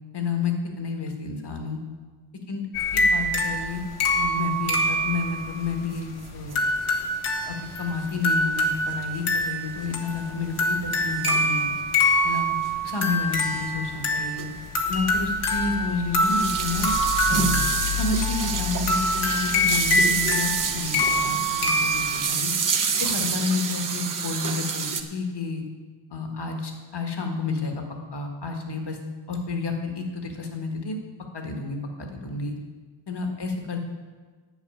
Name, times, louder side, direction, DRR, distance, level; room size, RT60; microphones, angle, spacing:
voice 1, 0.1-1.8 2.5-2.6 2.9-3.8 4.2-6.6 7.5-11.7 12.2-12.5 12.8-14.5 14.9-16.9 17.3-17.5 17.9-22.5 23.0-25.6 26.1-27.8 28.1-29.0 29.3-31.0 31.3-32.5 33.1-33.8, left 3 dB, 55° left, 3 dB, 1.7 m, -30 dB
sound 1, 2.7-22.2, left 1 dB, 75° left, 1.6 m, -25 dB
sound 2, 5.9-6.0 6.2-6.3 6.5-6.6 8.3-8.4 8.6-8.7 9.8-9.9 11.3-11.5 12.6-12.7 13.4-13.5 13.8-14.0 14.4-14.6 14.9-15.0 15.5-25.0, right 6 dB, 40° right, 0.9 m, -28 dB
11.0 x 6.0 x 8.7 m, 1.5 s
wide cardioid pair, 120°, 49 cm